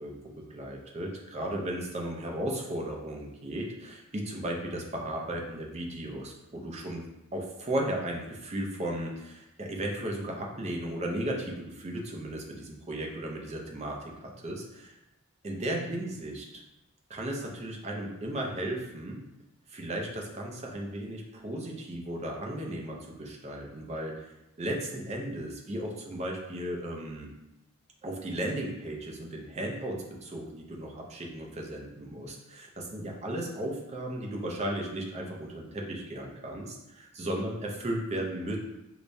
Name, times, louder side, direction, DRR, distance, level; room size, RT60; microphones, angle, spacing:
voice 1, 0.0-7.0 7.3-14.9 15.4-16.6 17.1-19.2 19.7-27.3 28.0-38.6, right 1 dB, 30° right, 0 dB, 0.5 m, -35 dB
4.8 x 2.2 x 2.6 m, 0.92 s
head